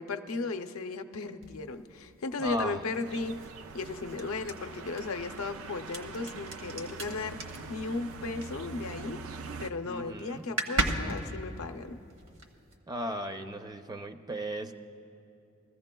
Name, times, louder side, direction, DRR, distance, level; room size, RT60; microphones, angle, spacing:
voice 1, 0.0-3.3 3.7-7.4 7.7-9.2 9.6-12.0, left 3 dB, 85° left, 7 dB, 0.6 m, -36 dB
sound 1, 1.4-9.1 9.4-9.8 10.1-10.2 10.4-12.8, right 2 dB, 65° right, 1.1 m, -37 dB
voice 2, 2.4-2.8 9.8-10.5 12.9-14.7, right 1 dB, 20° right, 7 dB, 0.4 m, -36 dB
sound 2, 3.0-9.7, right 4 dB, 85° right, 0.5 m, -43 dB
22.0 x 14.5 x 2.2 m, 2.7 s
head